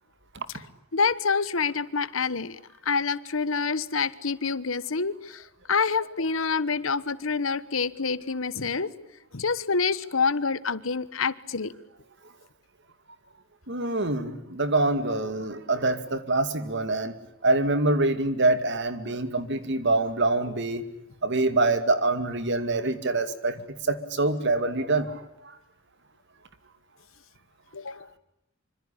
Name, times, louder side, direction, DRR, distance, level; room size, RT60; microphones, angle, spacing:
voice 1, 0.9-8.9 9.3-11.7 27.7-28.1, left 5 dB, 85° left, 1.2 m, -27 dB
voice 2, 13.7-17.1 17.4-20.9 21.2-23.6 23.8-25.5, right 2 dB, 60° right, 2.5 m, -25 dB
26.0 x 25.5 x 8.7 m
head